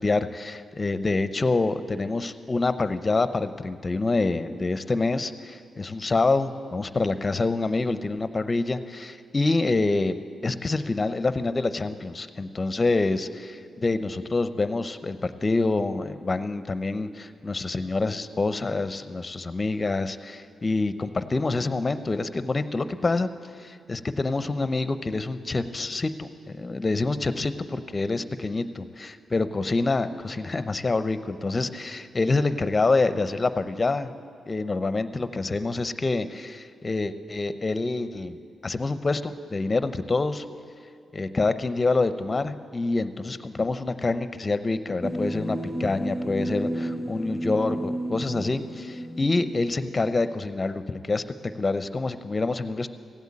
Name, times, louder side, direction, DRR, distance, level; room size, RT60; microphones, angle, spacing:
voice 1, 0.0-23.3 23.6-34.1 34.5-38.4 38.6-40.4 41.1-52.9, left 3 dB, 30° left, 12 dB, 0.6 m, -26 dB
sound 1, 45.0-50.3, right 1 dB, 15° right, 2.9 m, -32 dB
15.5 x 8.1 x 8.6 m, 2.4 s
cardioid pair, 85°, 0 cm